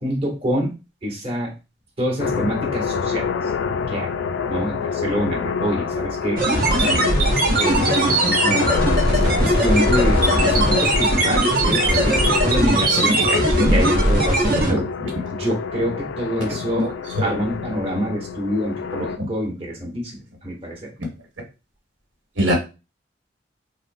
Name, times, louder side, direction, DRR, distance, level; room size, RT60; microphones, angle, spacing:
voice 1, 0.0-0.7 1.0-1.5 2.0-3.3 3.9-4.1 4.5-6.4 6.7-7.0 7.3-13.3 13.7-14.8 15.3-16.9 17.2-20.8, equal, 30° right, -2 dB, 1.0 m, -26 dB
sound 1, 2.2-19.2, left 6 dB, 80° left, 0.3 m, -26 dB
sound 2, 6.4-14.7, right 1 dB, 55° right, 0.8 m, -19 dB
voice 2, 13.3-13.7 14.7-15.1 16.7-16.9 22.4-22.5, equal, 80° right, 0 dB, 1.3 m, -23 dB
3.7 x 2.0 x 2.5 m, 0.29 s
head